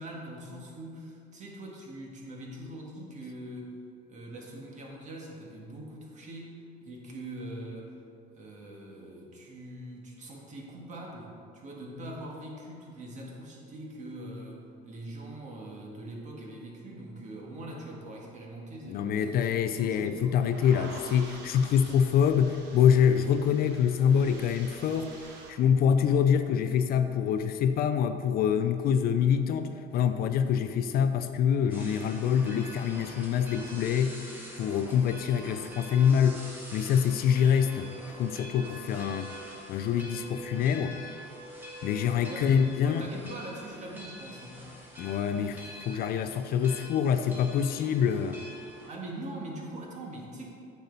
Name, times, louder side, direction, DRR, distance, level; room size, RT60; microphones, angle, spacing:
voice 1, 0.0-3.7 4.1-6.6 6.8-7.9 8.3-20.4 42.1-44.7 48.9-50.5, right 1 dB, 40° right, -1 dB, 1.8 m, -42 dB
voice 2, 18.8-25.2 25.5-34.2 34.6-36.4 36.7-37.9 38.2-39.3 39.7-41.0 41.8-43.1 45.0-48.4, left 8 dB, 55° left, 9 dB, 0.5 m, -25 dB
sound 1, 19.4-25.5, right 3 dB, 70° right, 1.2 m, -48 dB
sound 2, 31.7-48.9, equal, 10° right, 1.8 m, -45 dB
8.9 x 6.9 x 4.0 m, 2.4 s
cardioid pair, 125°, 19 cm